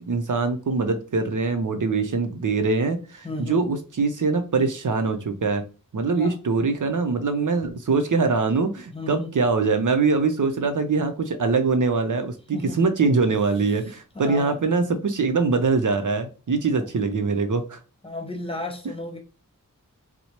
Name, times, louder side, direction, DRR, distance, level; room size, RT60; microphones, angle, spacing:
voice 1, 0.1-5.6 5.9-17.8, right 4 dB, 65° right, 7 dB, 0.6 m, -23 dB
voice 2, 3.2-3.7 6.2-6.4 8.9-9.3 12.5-12.8 14.1-14.6 16.8-16.9 18.0-19.2, left 2 dB, 15° left, 3 dB, 0.9 m, -33 dB
4.2 x 2.0 x 2.9 m, 0.35 s
wide cardioid pair, 40°, 34 cm